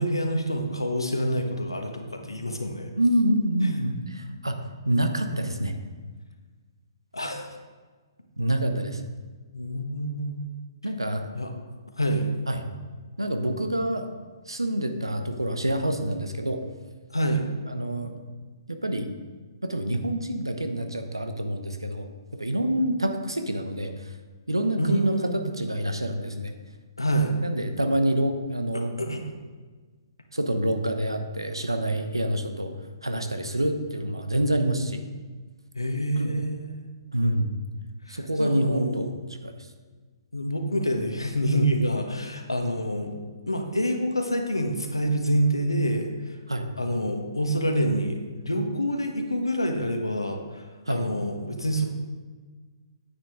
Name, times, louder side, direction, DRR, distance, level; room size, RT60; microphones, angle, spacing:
voice 1, 0.0-2.9 7.1-7.5 9.5-10.5 11.3-11.5 12.0-12.3 17.1-17.4 24.8-25.4 27.0-27.3 28.7-29.2 35.7-36.9 38.1-39.1 40.3-43.1 43.5-46.4 46.8-51.8, equal, 85° left, 4 dB, 1.3 m, -27 dB
voice 2, 3.0-4.6 4.8-5.7 8.4-9.0 10.8-11.3 12.5-12.6 13.2-14.1 14.5-16.6 17.7-18.2 18.7-19.1 19.6-24.1 24.5-26.5 27.4-29.0 30.3-32.8 33.0-35.0 36.2-36.3 37.1-37.5 38.1-39.1 39.4-39.5 46.5-46.7 50.9-51.0, right 1 dB, 85° right, 7 dB, 1.0 m, -27 dB
9.5 x 8.8 x 3.6 m, 1.4 s
figure-of-eight pair, 125°, 2 cm